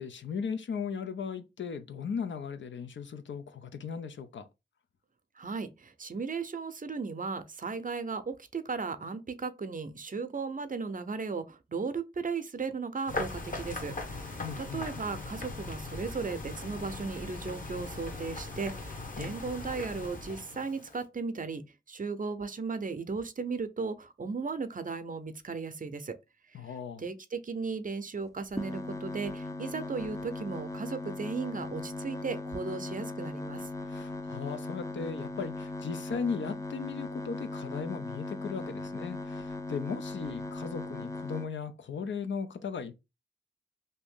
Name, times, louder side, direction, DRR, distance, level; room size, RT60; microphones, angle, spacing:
voice 1, 0.0-4.4 14.4-14.9 19.2-19.4 26.5-27.0 33.9-42.9, left 6 dB, 75° left, 0.5 m, -37 dB
voice 2, 5.4-14.2 14.6-21.6 21.9-26.1 27.0-33.7, right 4 dB, 45° right, 0.6 m, -36 dB
sound 1, 13.1-21.0, left 2 dB, 45° left, 1.0 m, -39 dB
sound 2, 28.5-41.5, left 2 dB, 15° left, 0.5 m, -38 dB
2.7 x 2.5 x 3.5 m
cardioid pair, 50°, 20 cm